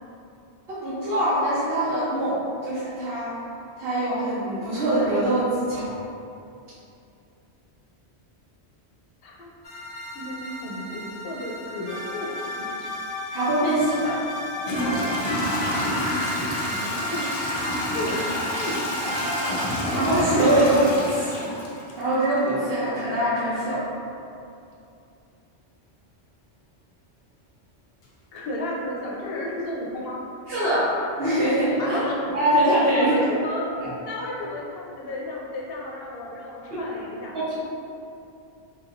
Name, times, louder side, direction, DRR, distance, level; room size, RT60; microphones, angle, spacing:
voice 1, 0.7-3.3 3.8-5.9 13.3-14.1 19.9-21.5 22.0-23.8 30.5-30.9 31.2-32.0 32.3-33.2 33.8-33.9 36.7-36.8 37.5-37.6, right 1 dB, 65° right, -11 dB, 1.0 m, -23 dB
sound 1, 9.6-20.9, left 1 dB, 25° left, 0.8 m, -33 dB
voice 2, 10.1-12.3 12.6-12.9 16.6-17.3 17.9-18.2 18.6-18.8 19.1-19.3 28.3-30.2 31.8-32.1 32.9-33.6 34.0-37.3, left 1 dB, 65° left, -3 dB, 0.8 m, -33 dB
Toilet flush / Trickle dribble, 13.8-13.9 14.6-22.4, left 1 dB, 50° left, 0.4 m, -28 dB
3.3 x 2.9 x 2.5 m, 2.7 s
omnidirectional pair, 1.1 m